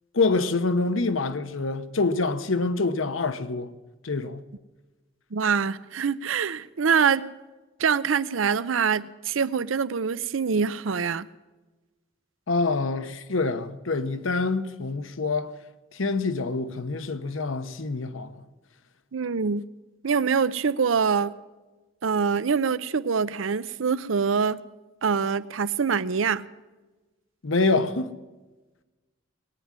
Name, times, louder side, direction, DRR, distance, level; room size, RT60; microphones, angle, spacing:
voice 1, 0.1-3.7 4.0-4.4 12.5-15.5 15.9-18.4 27.4-28.1, left 3 dB, 80° left, 1.0 m, -26 dB
voice 2, 5.3-7.3 7.8-11.3 19.1-19.6 20.0-21.3 22.0-24.6 25.0-26.4, right 6 dB, 80° right, 0.6 m, -24 dB
20.0 x 9.8 x 7.4 m
head